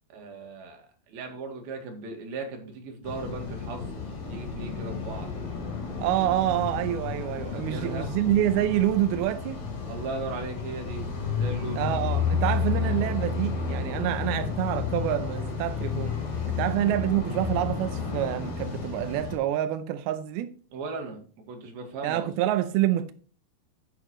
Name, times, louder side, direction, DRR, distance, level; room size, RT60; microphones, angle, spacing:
voice 1, 0.1-5.3 7.5-8.1 9.9-11.0 11.3-11.9 20.7-21.2 21.5-22.3, right 3 dB, 65° right, 3.5 m, -37 dB
sound 1, 3.0-19.4, left 5 dB, 70° left, 5.6 m, -31 dB
voice 2, 6.0-9.6 11.8-16.1 16.5-20.5 22.0-23.1, right 13 dB, 85° right, 2.2 m, -27 dB
9.6 x 9.0 x 3.1 m
omnidirectional pair, 5.1 m